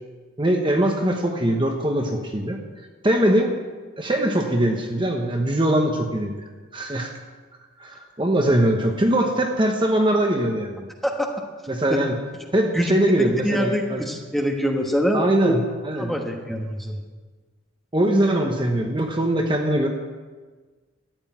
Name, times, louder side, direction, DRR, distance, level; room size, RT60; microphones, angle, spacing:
voice 1, 0.4-2.6 3.0-3.5 4.0-6.4 6.7-7.1 7.8-10.9 11.7-12.2 12.5-14.1 15.1-16.1 17.9-19.9, right 1 dB, 20° right, 2 dB, 1.1 m, -22 dB
voice 2, 13.4-15.5 16.0-17.0, equal, ahead, 1 dB, 1.3 m, -24 dB
13.5 x 8.2 x 9.3 m, 1.4 s
head